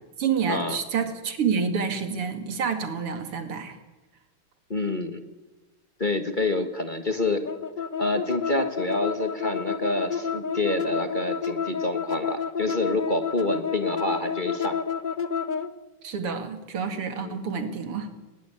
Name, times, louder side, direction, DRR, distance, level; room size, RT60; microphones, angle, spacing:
voice 1, 0.2-3.8 16.0-18.1, right 6 dB, 90° right, 8 dB, 3.2 m, -28 dB
voice 2, 4.7-5.2 6.0-7.5 8.0-14.8 17.2-17.4, left 2 dB, 25° left, 7 dB, 1.4 m, -27 dB
sound 1, 7.4-15.7, left 7 dB, 55° left, 0.5 m, -30 dB
21.0 x 19.5 x 8.7 m, 1.1 s
omnidirectional pair, 2.4 m